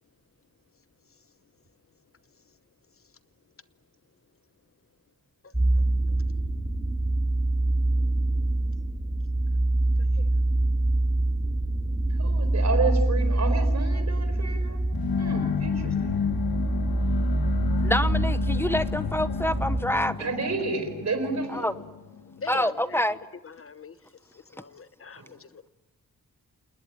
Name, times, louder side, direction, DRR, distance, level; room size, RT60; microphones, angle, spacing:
sound 1, 5.5-19.8, right 1 dB, 10° right, 2.9 m, -25 dB
voice 1, 12.2-14.8 15.2-16.1 20.2-21.7 25.2-25.3, right 3 dB, 50° right, 8 dB, 4.6 m, -30 dB
sound 2, 14.9-22.7, left 6 dB, 85° left, 1.7 m, -31 dB
voice 2, 17.8-20.3 21.5-21.8 22.5-23.2, left 1 dB, 5° left, 13 dB, 0.8 m, -27 dB
voice 3, 22.4-23.0 23.4-23.9 24.5-25.7, left 5 dB, 40° left, 14 dB, 1.0 m, -41 dB
28.5 x 20.0 x 9.1 m, 1.0 s
wide cardioid pair, 140°, 35 cm